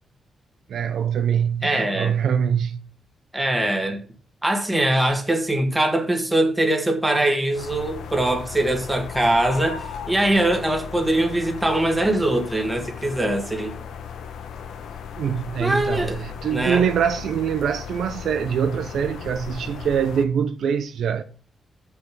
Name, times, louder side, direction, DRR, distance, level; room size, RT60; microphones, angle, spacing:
voice 1, 0.7-2.9 15.2-21.2, right 8 dB, 65° right, 0.6 m, -24 dB
voice 2, 1.6-2.2 3.3-4.0 4.4-13.8 15.6-16.2 16.5-16.9, right 1 dB, 10° right, 1.4 m, -22 dB
sound 1, 7.5-20.2, left 7 dB, 85° left, 1.2 m, -36 dB
7.5 x 5.9 x 6.0 m
wide cardioid pair, 180°, 0 cm